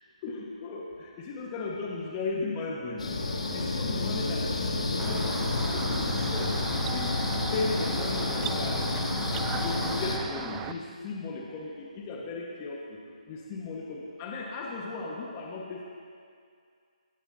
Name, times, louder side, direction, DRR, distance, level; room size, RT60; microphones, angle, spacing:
voice 1, 0.2-3.0 3.5-6.6 6.9-8.9 9.6-13.0 13.3-15.8, left 3 dB, 20° left, -2 dB, 1.7 m, -36 dB
sound 1, 3.0-10.2, left 3 dB, 70° left, 2.8 m, -30 dB
sound 2, 5.0-10.7, right 8 dB, 15° right, 0.4 m, -37 dB
21.5 x 19.5 x 2.9 m, 2.2 s
hypercardioid pair, 160°, 4 cm